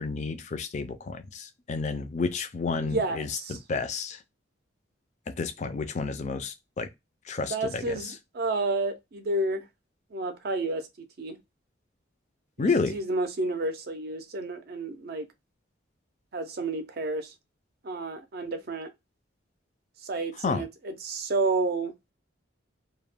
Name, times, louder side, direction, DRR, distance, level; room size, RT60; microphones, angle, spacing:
voice 1, 0.0-4.2 5.4-6.9 7.3-8.0 12.6-13.0 20.4-20.6, left 4 dB, 40° left, 0.3 m, -30 dB
voice 2, 2.8-3.6 7.4-9.6 10.1-11.4 12.6-15.3 16.3-17.3 17.8-18.9 20.0-21.9, right 2 dB, 55° right, 0.5 m, -30 dB
2.2 x 2.1 x 3.3 m
head